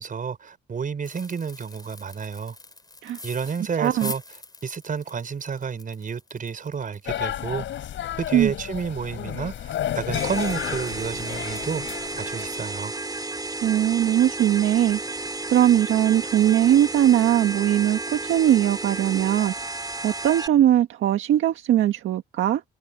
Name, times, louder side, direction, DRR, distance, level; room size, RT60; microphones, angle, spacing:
voice 1, 0.0-2.6 3.2-4.2 4.6-7.9 8.2-12.9, right 6 dB, 45° right, 5.5 m, -30 dB
sound 1, 1.0-8.8 9.2-9.3 9.7-9.9 10.3-10.4, left 2 dB, 20° left, 5.2 m, -43 dB
voice 2, 3.8-4.1 8.3-8.5 13.6-15.2 15.5-19.5 20.0-22.6, right 11 dB, 80° right, 1.7 m, -20 dB
sound 2, 7.1-12.8, left 11 dB, 75° left, 7.2 m, -32 dB
sound 3, 10.1-20.5, right 2 dB, 20° right, 3.2 m, -32 dB
cardioid pair, 90°, 20 cm